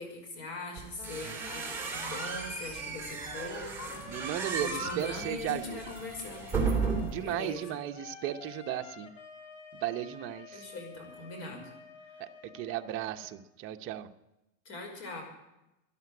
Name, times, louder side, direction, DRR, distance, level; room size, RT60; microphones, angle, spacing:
voice 1, 0.0-6.5 7.2-7.8 10.5-11.7 12.0-12.3 14.6-15.2, left 3 dB, 40° left, 3 dB, 5.6 m, -42 dB
sound 1, 0.8-7.3, right 5 dB, 5° right, 3.4 m, -35 dB
Wind instrument woodwind instrument, 0.9-13.4, left 7 dB, 60° left, 3.4 m, -49 dB
voice 2, 4.1-5.8 7.1-9.1 9.7-10.6 12.2-12.3 12.5-14.1, right 12 dB, 35° right, 6 dB, 0.9 m, -35 dB
13.0 x 11.5 x 9.6 m, 0.93 s
supercardioid pair, 150°, 38 cm